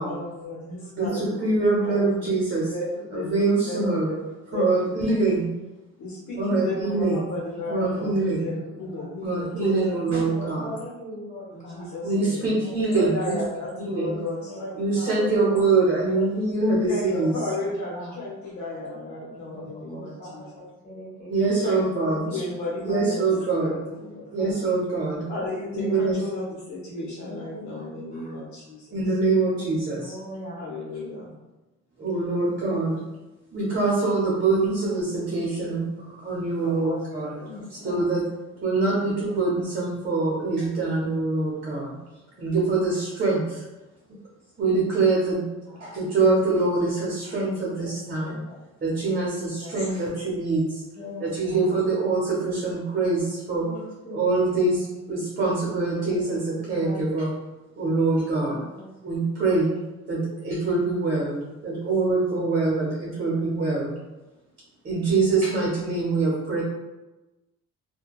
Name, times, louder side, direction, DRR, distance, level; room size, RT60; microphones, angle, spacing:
voice 1, 0.0-1.5 1.8-2.3 2.7-5.1 6.0-10.2 11.5-15.6 16.8-20.6 21.6-24.6 25.3-28.9 30.6-31.3 36.6-37.9 49.8-50.0, left 2 dB, 70° left, -5 dB, 0.9 m, -34 dB
voice 2, 1.0-2.7 3.1-4.1 4.5-5.5 6.4-7.2 7.7-8.5 9.2-10.7 12.0-13.3 13.8-14.2 14.8-17.4 21.3-22.4 22.8-23.7 24.3-25.3 25.7-26.2 28.9-30.1 32.0-32.9 33.5-37.3 37.7-38.2 38.6-41.9 42.4-43.7 44.6-45.4 45.8-48.4 48.8-50.8 51.2-53.7 54.1-57.3 57.8-58.6 59.0-59.7 60.1-61.4 61.6-63.9 64.8-66.6, right 3 dB, 35° right, -5 dB, 0.8 m, -24 dB
voice 3, 7.5-8.0 8.8-9.1 9.7-9.9 10.3-11.9 12.6-13.0 13.3-14.2 14.5-14.6 16.1-16.3 16.7-16.8 17.1-17.3 17.6-18.2 19.5-21.6 24.0-24.1 25.4-26.0 27.2-28.4 29.9-30.6 32.2-32.3 32.8-32.9 34.7-35.4 37.4-38.1 45.3-45.9 47.8-47.9 48.2-48.6 49.0-49.1 49.6-49.7 50.9-51.7 53.6-54.3 56.1-56.3 56.6-57.0 58.5-58.9, left 1 dB, 25° left, -6 dB, 1.4 m, -41 dB
2.8 x 2.2 x 2.3 m, 1.1 s
cardioid pair, 90°, 30 cm